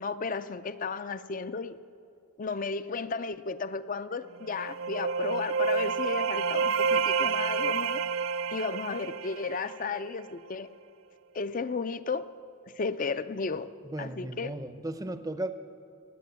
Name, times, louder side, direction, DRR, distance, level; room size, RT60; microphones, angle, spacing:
voice 1, 0.0-1.8 2.4-8.0 8.5-10.7 11.3-12.3 12.8-13.7 14.0-14.5, left 4 dB, 40° left, 13 dB, 0.5 m, -34 dB
sound 1, 4.4-10.1, right 5 dB, 80° right, 0.4 m, -29 dB
voice 2, 13.8-15.5, right 1 dB, 15° right, 11 dB, 0.6 m, -35 dB
18.5 x 8.6 x 8.1 m, 2.6 s
head